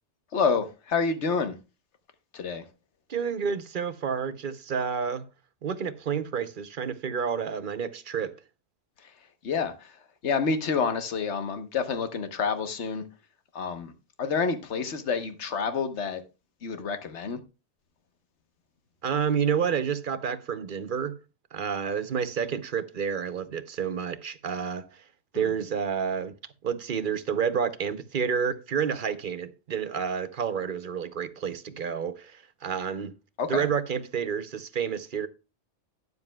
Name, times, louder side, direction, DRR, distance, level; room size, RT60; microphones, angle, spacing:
voice 1, 0.3-1.6 2.3-2.7 9.0-9.1 9.4-13.0 13.5-13.9 14.2-16.2 16.6-17.4 25.3-25.5 33.4-33.7, left 5 dB, 75° left, 1.3 m, -28 dB
voice 2, 3.1-5.3 5.6-8.4 19.0-21.2 21.5-25.0 25.3-26.3 26.6-33.1 33.5-35.3, right 7 dB, 50° right, 0.8 m, -29 dB
12.0 x 9.5 x 2.2 m
omnidirectional pair, 1.2 m